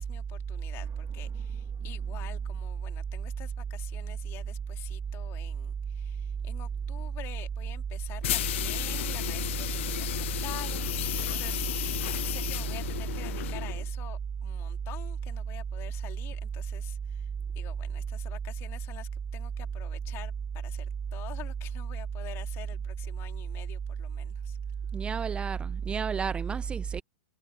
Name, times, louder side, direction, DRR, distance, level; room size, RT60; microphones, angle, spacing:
voice 1, 0.0-11.7 12.2-24.6, left 16 dB, 35° left, 3.0 m, -47 dB
sound 1, 0.7-12.0, right 13 dB, 30° right, 1.5 m, -51 dB
sound 2, 8.2-13.9, left 14 dB, 65° left, 0.4 m, -33 dB
voice 2, 24.9-27.0, right 6 dB, 15° right, 0.4 m, -31 dB
hypercardioid pair, 130°, 7 cm